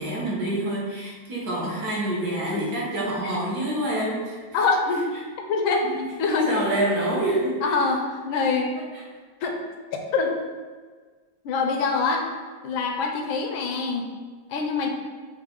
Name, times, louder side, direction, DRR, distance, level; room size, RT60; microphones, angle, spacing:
voice 1, 0.0-4.6 5.9-7.8 8.8-8.9, right 1 dB, 55° right, -5 dB, 1.4 m, -27 dB
voice 2, 4.5-5.1 5.4-5.9 6.2-6.5 7.6-8.7 9.4-9.6 10.1-10.3 11.4-12.2 12.6-14.1 14.5-14.9, left 4 dB, 85° left, 3 dB, 1.4 m, -24 dB
4.9 x 2.7 x 3.6 m, 1.5 s
omnidirectional pair, 2.2 m